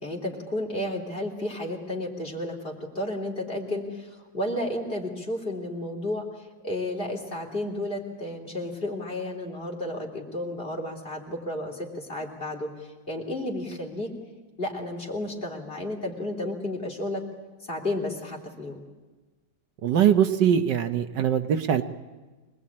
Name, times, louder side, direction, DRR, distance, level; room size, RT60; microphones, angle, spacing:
voice 1, 0.0-12.7 13.1-14.1 14.6-17.2 17.6-18.8, left 1 dB, 30° left, 0 dB, 3.5 m, -32 dB
voice 2, 19.8-21.8, right 9 dB, 75° right, 8 dB, 1.6 m, -22 dB
24.5 x 20.0 x 8.7 m, 1.3 s
omnidirectional pair, 2.0 m